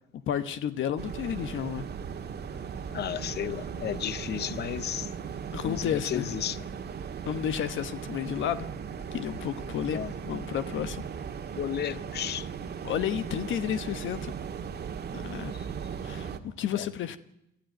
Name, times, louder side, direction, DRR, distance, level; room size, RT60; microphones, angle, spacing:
voice 1, 0.1-1.9 5.5-6.3 7.2-8.7 9.1-11.0 12.8-14.3 15.1-15.6 16.0-17.2, left 9 dB, 75° left, 1.1 m, -32 dB
sound 1, 1.0-16.4, right 7 dB, 55° right, 1.6 m, -38 dB
voice 2, 2.9-5.1 5.6-6.6 9.9-10.1 11.6-12.5 15.5-15.7 16.7-16.9, left 10 dB, 55° left, 0.7 m, -33 dB
24.5 x 13.0 x 9.1 m
cardioid pair, 90°, 20 cm